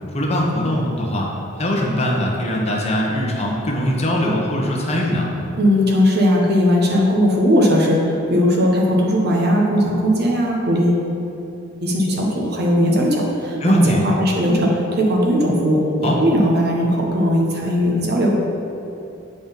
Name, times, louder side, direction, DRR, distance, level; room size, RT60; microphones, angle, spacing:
voice 1, 0.1-1.3 1.6-5.3 13.6-14.0 16.0-16.2, left 1 dB, 30° left, -2 dB, 1.0 m, -21 dB
voice 2, 5.6-11.1 11.8-18.4, equal, 55° right, -1 dB, 1.2 m, -18 dB
7.6 x 4.1 x 5.3 m, 2.8 s
head